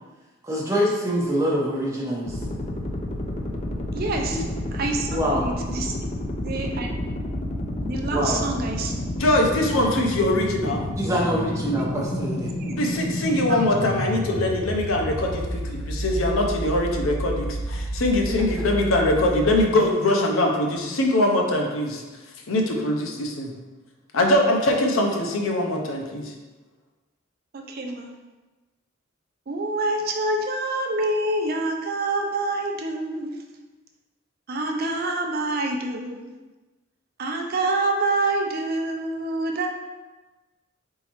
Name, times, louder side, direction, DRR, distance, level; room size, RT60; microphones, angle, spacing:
voice 1, 0.4-2.4 4.3-4.4 5.0-5.5 8.1-8.4 10.9-12.5 18.3-18.7, equal, 15° right, -5 dB, 0.9 m, -25 dB
sound 1, 2.2-19.6, left 1 dB, 30° left, 0.4 m, -30 dB
voice 2, 3.9-4.4 4.7-5.1 5.4-5.9 6.4-7.0 7.8-8.9 11.7-11.9 12.6-12.9 27.5-28.1 29.5-33.3 34.5-36.3 37.2-39.7, right 2 dB, 50° right, 3 dB, 0.5 m, -26 dB
voice 3, 9.2-10.9 12.8-22.0 22.5-23.5 24.1-26.3, left 1 dB, 80° left, 2 dB, 0.6 m, -22 dB
4.0 x 3.7 x 3.0 m, 1.2 s
head